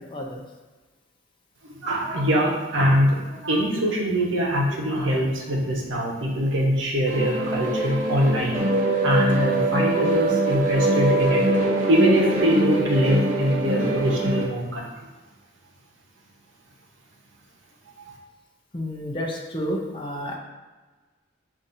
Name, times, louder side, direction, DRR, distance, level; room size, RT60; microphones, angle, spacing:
voice 1, 0.1-0.4 18.7-20.4, equal, 25° left, -1 dB, 0.6 m, -30 dB
voice 2, 1.6-15.1 18.0-18.2, equal, 75° right, -1 dB, 0.9 m, -23 dB
sound 1, 7.1-14.5, right 2 dB, 40° right, 1.0 m, -23 dB
6.9 x 2.6 x 2.6 m, 1.3 s
head